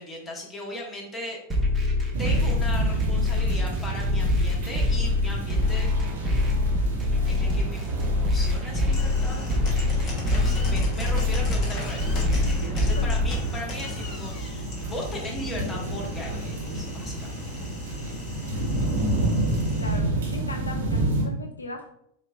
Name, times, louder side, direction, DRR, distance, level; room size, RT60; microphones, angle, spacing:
voice 1, 0.0-1.4 2.2-6.0 7.3-9.4 9.8-17.7, left 1 dB, 15° left, -2 dB, 1.1 m, -38 dB
sound 1, 1.5-13.5, left 2 dB, 15° right, 0.7 m, -25 dB
sound 2, 2.1-21.2, right 1 dB, 60° right, 1.0 m, -30 dB
sound 3, 8.8-20.0, left 3 dB, 35° left, 1.1 m, -37 dB
voice 2, 10.4-10.8 12.4-13.1 19.8-21.9, left 2 dB, 80° left, 3 dB, 0.4 m, -38 dB
4.2 x 2.8 x 2.4 m, 0.72 s
figure-of-eight pair, 90°, 0 cm